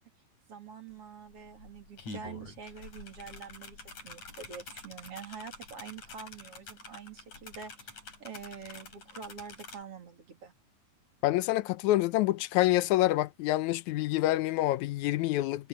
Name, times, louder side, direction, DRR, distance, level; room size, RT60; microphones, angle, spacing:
voice 1, 0.5-10.5, right 6 dB, 45° right, 3.1 m, -46 dB
sound 1, 0.9-1.0 1.3-9.8, left 3 dB, 50° left, 7.0 m, -47 dB
voice 2, 11.2-15.7, left 16 dB, 75° left, 1.8 m, -27 dB
omnidirectional pair, 4.1 m